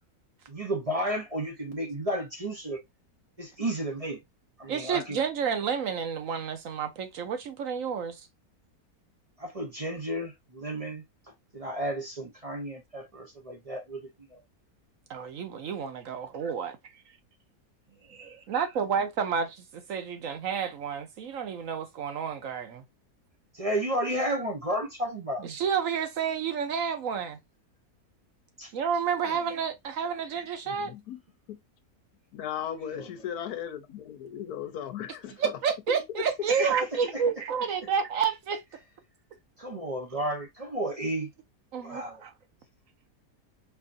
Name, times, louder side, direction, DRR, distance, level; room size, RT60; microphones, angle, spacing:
voice 1, 0.5-2.8 3.4-4.2 4.6-5.2 9.4-11.0 11.5-14.4 23.5-25.5 28.6-28.7 29.3-29.4 32.9-33.1 36.6-36.7 37.1-37.2 39.6-41.3 41.8-42.2, right 1 dB, 30° right, 0.7 m, -32 dB
voice 2, 4.7-8.3 15.1-17.0 18.1-22.8 25.4-27.4 28.7-30.9 35.4-38.6 41.7-42.3, right 7 dB, 65° right, 1.1 m, -30 dB
voice 3, 30.7-31.2 31.5-31.6 32.3-35.4, left 9 dB, 85° left, 1.2 m, -37 dB
4.6 x 2.6 x 2.5 m
omnidirectional pair, 1.6 m